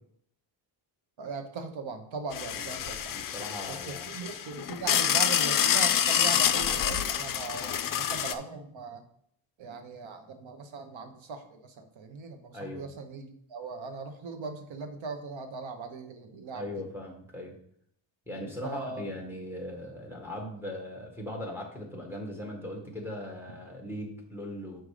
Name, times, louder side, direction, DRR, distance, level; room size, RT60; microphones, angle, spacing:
voice 1, 1.2-3.2 3.7-9.0 9.6-16.7 18.6-19.0, right 4 dB, 65° right, 8 dB, 0.9 m, -39 dB
sound 1, 2.3-8.3, left 9 dB, 45° left, 0.4 m, -27 dB
voice 2, 3.1-4.3 12.5-12.8 16.5-17.6 18.3-24.8, left 1 dB, 5° right, 1 dB, 1.5 m, -39 dB
6.1 x 5.1 x 4.9 m, 0.68 s
wide cardioid pair, 150°, 50 cm